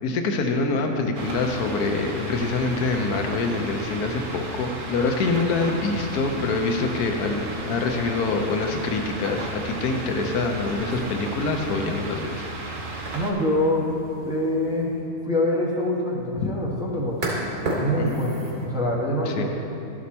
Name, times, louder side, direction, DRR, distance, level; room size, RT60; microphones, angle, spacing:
voice 1, 0.0-12.5 16.4-16.5 18.0-18.2 19.3-19.4, left 3 dB, 85° left, 3 dB, 1.2 m, -25 dB
sound 1, 1.1-13.3, right 3 dB, 45° right, 0.7 m, -35 dB
sound 2, 9.9-18.7, right 1 dB, 75° right, 3.0 m, -36 dB
voice 2, 13.1-13.9 14.3-14.9 15.2-17.3 17.8-19.4, left 1 dB, 5° right, -5 dB, 1.0 m, -25 dB
12.5 x 5.1 x 4.2 m, 2.7 s
omnidirectional pair, 1.6 m